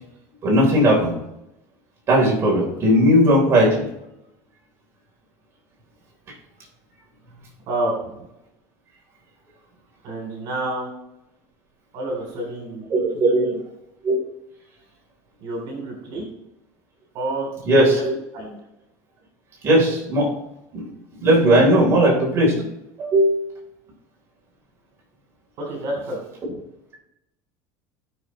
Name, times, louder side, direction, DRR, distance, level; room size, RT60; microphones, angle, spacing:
voice 1, 0.4-1.1 2.1-3.9 12.9-13.5 14.0-14.2 17.7-18.1 19.6-20.3 20.7-20.8 21.2-22.6 23.0-23.4, right 1 dB, 30° right, -2 dB, 3.7 m, -17 dB
voice 2, 7.7-8.3 10.0-10.9 11.9-12.8 13.1-13.5 15.4-16.3 17.1-18.0 18.3-18.6 25.6-26.2 26.5-26.6, right 1 dB, 55° right, 0 dB, 3.3 m, -29 dB
18.0 x 6.4 x 3.1 m, 0.87 s
cardioid pair, 150°, 9 cm